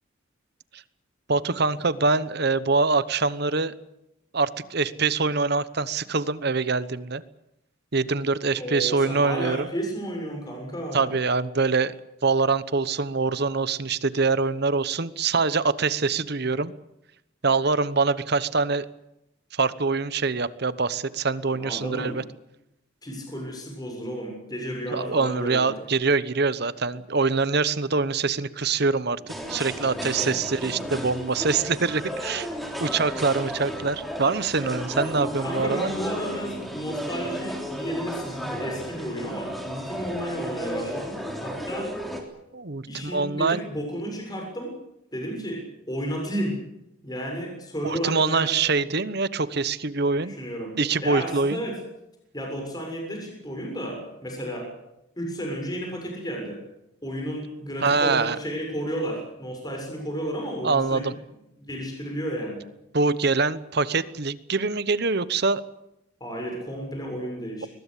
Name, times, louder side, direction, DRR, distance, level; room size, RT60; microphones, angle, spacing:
voice 1, 1.3-3.7 4.3-7.2 7.9-9.7 10.9-11.9 12.2-16.7 17.4-18.8 19.5-22.2 24.9-32.5 32.8-35.9 42.5-43.6 47.8-50.3 50.8-51.6 57.8-58.4 60.6-61.1 62.9-65.6, right 4 dB, 50° right, 16 dB, 1.0 m, -24 dB
voice 2, 8.5-11.1 21.5-22.2 23.0-25.7 29.3-29.6 29.9-30.3 35.4-41.9 42.9-44.7 45.1-46.6 47.0-48.5 50.2-51.8 52.3-54.7 55.2-56.6 57.0-61.1 61.6-62.6 66.2-67.7, equal, 20° left, 1 dB, 7.2 m, -32 dB
sound 1, 29.3-42.2, equal, ahead, 3.5 m, -33 dB
22.0 x 21.0 x 8.4 m, 0.86 s
head